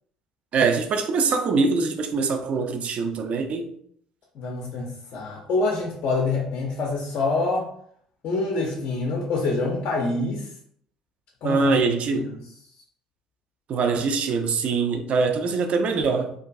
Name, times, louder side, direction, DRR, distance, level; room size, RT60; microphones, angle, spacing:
voice 1, 0.5-3.7 11.4-12.3 13.7-16.3, right 4 dB, 45° right, 0.3 m, -23 dB
voice 2, 4.4-7.7 8.2-10.5 11.4-11.7 12.1-12.4, left 3 dB, 50° left, 0.4 m, -26 dB
2.4 x 2.3 x 2.3 m
figure-of-eight pair, 55°, 3 cm